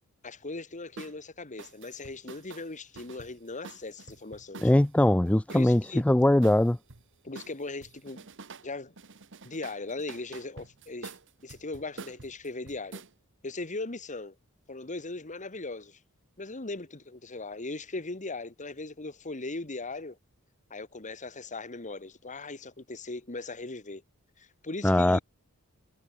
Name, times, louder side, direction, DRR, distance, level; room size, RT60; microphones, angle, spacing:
voice 1, 0.2-4.7 5.5-6.0 7.2-8.3 8.6-8.9 9.4-11.2 11.4-13.0 13.4-14.4 14.7-16.0 16.4-20.2 20.7-24.0 24.4-25.2, left 3 dB, 35° left, 1.8 m, -39 dB
sound 1, 1.0-1.2 1.6-4.9 5.5-7.0 7.3-8.7 9.0-13.1, right 4 dB, 60° right, 1.6 m, -47 dB
voice 2, 4.6-6.8 24.8-25.2, left 1 dB, 5° left, 0.3 m, -21 dB
head